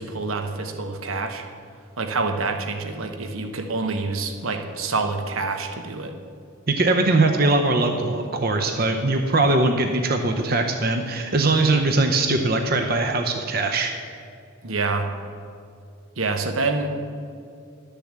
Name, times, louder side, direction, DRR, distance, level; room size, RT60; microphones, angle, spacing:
voice 1, 0.0-1.4 2.0-6.1 14.6-15.1 16.2-16.9, right 3 dB, 80° right, 5 dB, 1.0 m, -27 dB
voice 2, 6.7-13.9, right 2 dB, 45° right, 5 dB, 0.7 m, -21 dB
11.5 x 6.9 x 7.4 m, 2.4 s
head